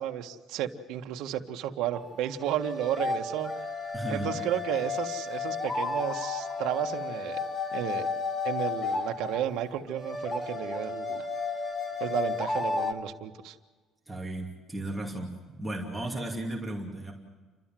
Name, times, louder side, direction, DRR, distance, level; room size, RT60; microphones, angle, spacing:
voice 1, 0.0-3.5 4.1-7.4 7.7-8.1 8.4-11.2 12.0-13.5, right 11 dB, 70° right, 4 dB, 1.6 m, -33 dB
sound 1, 1.9-12.9, left 4 dB, 20° left, 1.5 m, -33 dB
voice 2, 3.9-4.4 14.1-17.1, right 1 dB, 5° right, -2 dB, 2.6 m, -35 dB
30.0 x 13.0 x 7.6 m, 1.4 s
cardioid pair, 160°, 0 cm